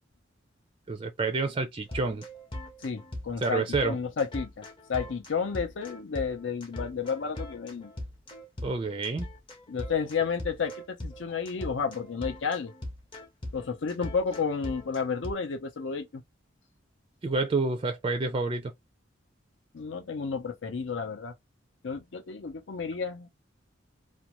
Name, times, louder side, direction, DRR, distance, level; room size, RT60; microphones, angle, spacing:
voice 1, 0.9-2.2 3.4-4.0 8.6-9.3 17.2-18.7, right 3 dB, 30° right, 0.4 m, -28 dB
sound 1, 1.9-15.3, left 1 dB, 25° left, 0.6 m, -40 dB
voice 2, 2.8-7.9 9.7-12.7 13.5-16.2 19.7-21.3 21.8-23.3, left 5 dB, 75° left, 0.6 m, -32 dB
2.5 x 2.2 x 2.9 m
head